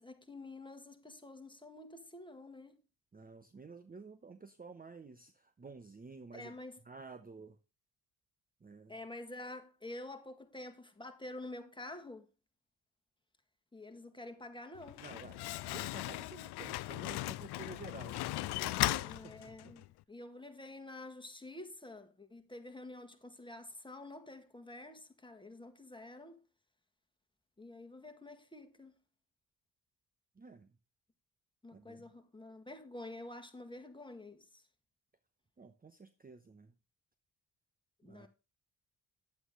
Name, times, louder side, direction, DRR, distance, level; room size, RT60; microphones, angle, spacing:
voice 1, 0.0-2.8 6.3-6.8 8.9-12.3 13.7-15.0 19.0-26.4 27.6-28.9 31.6-34.6 38.0-38.3, left 2 dB, 10° left, 1.8 m, -48 dB
voice 2, 3.1-6.6 6.8-7.6 8.6-8.9 15.0-19.8 30.4-30.8 31.7-32.1 35.6-36.7 38.0-38.3, right 4 dB, 20° right, 0.8 m, -52 dB
Slam, 14.7-19.9, left 17 dB, 60° left, 0.5 m, -37 dB
9.6 x 8.0 x 3.7 m
hypercardioid pair, 45°, 46 cm